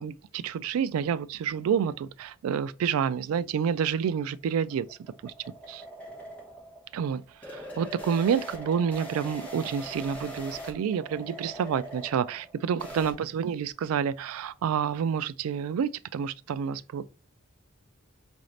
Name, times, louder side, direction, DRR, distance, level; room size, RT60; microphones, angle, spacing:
voice 1, 0.0-4.9 5.2-5.3 5.7-5.8 6.9-17.1, right 7 dB, 85° right, 0.3 m, -29 dB
sound 1, 4.5-13.1, right 1 dB, 5° left, 1.4 m, -42 dB
4.8 x 2.6 x 3.1 m
head